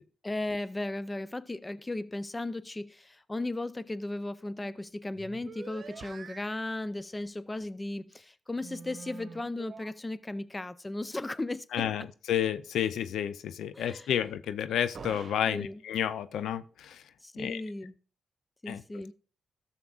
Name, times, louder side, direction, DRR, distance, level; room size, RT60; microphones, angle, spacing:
voice 1, 0.2-11.9 13.7-14.1 15.5-15.8 17.2-17.9 18.6-19.1, left 2 dB, 20° left, 0.5 m, -36 dB
sound 1, 4.6-4.8 5.1-6.7 8.6-9.9 14.9-15.5 15.9-16.3, right 5 dB, 55° right, 1.0 m, -46 dB
voice 2, 11.7-17.0 17.4-17.6 18.7-18.8, left 9 dB, 80° left, 0.4 m, -31 dB
12.5 x 7.2 x 2.4 m
cardioid pair, 65°, 0 cm